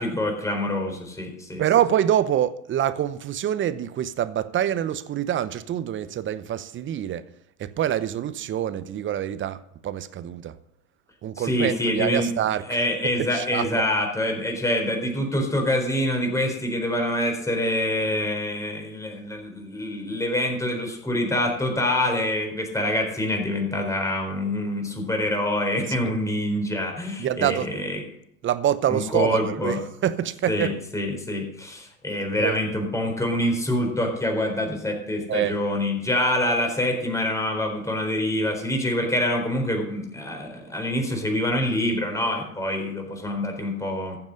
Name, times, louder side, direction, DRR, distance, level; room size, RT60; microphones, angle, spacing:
voice 1, 0.0-1.6 11.4-12.3 12.7-28.0 28.9-29.8 30.5-44.2, left 1 dB, 5° left, 4.1 m, -26 dB
voice 2, 1.6-7.3 7.6-10.6 11.2-12.8 13.2-13.9 25.9-26.1 27.2-27.8 28.4-30.8 32.4-32.6 35.3-35.6, right 10 dB, 25° right, 0.8 m, -26 dB
15.0 x 7.4 x 6.4 m
hypercardioid pair, 95°, 45 cm